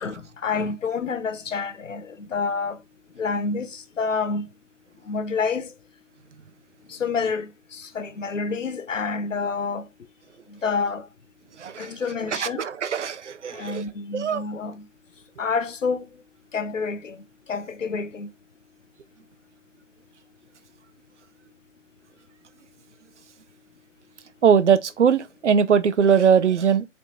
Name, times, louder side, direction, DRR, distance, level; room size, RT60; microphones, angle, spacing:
voice 1, 0.0-2.8 3.2-4.5 5.1-5.7 6.9-9.9 10.5-11.1 11.8-12.6 13.5-14.8 15.4-16.1 16.5-17.2 17.5-18.3, left 5 dB, 90° left, 0.5 m, -28 dB
voice 2, 11.6-11.9 12.3-13.8 14.1-14.4 24.4-26.9, right 7 dB, 70° right, 0.5 m, -20 dB
3.2 x 2.8 x 2.6 m
figure-of-eight pair, 135°, 37 cm